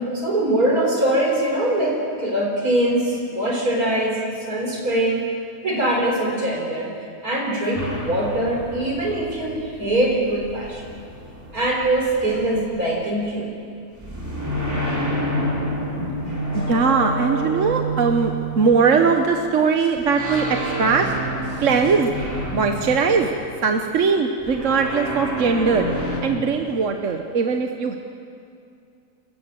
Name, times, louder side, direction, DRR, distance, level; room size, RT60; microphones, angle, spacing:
voice 1, 0.0-5.3 5.6-6.9 7.2-10.9 11.5-13.5 16.0-16.4, right 1 dB, 80° right, 0 dB, 4.7 m, -22 dB
sound 1, 7.8-13.4 14.0-19.5 20.0-23.8 24.4-26.2, right 1 dB, 10° right, 3.2 m, -29 dB
voice 2, 16.5-21.1 21.6-22.1 22.5-23.3 23.6-25.9 26.2-28.0, right 5 dB, 60° right, 4 dB, 1.3 m, -20 dB
27.5 x 15.0 x 7.6 m, 2.4 s
omnidirectional pair, 1.6 m